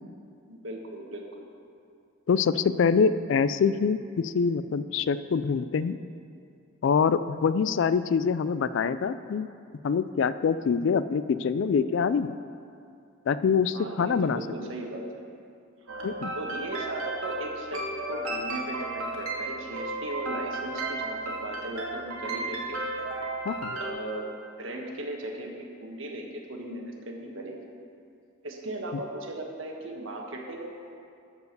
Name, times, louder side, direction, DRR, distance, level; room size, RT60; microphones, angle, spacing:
voice 1, 0.5-1.4 13.7-15.2 15.8-22.8 23.8-24.2 24.6-27.6 28.4-31.0, right 1 dB, 65° right, 1 dB, 1.4 m, -37 dB
voice 2, 2.3-6.0 6.8-9.5 9.8-12.4 13.3-14.4 16.0-16.3 23.5-23.8, left 6 dB, 60° left, 14 dB, 0.3 m, -25 dB
sound 1, 15.9-23.9, right 2 dB, 90° right, 1.7 m, -34 dB
13.0 x 4.8 x 6.7 m, 2.4 s
head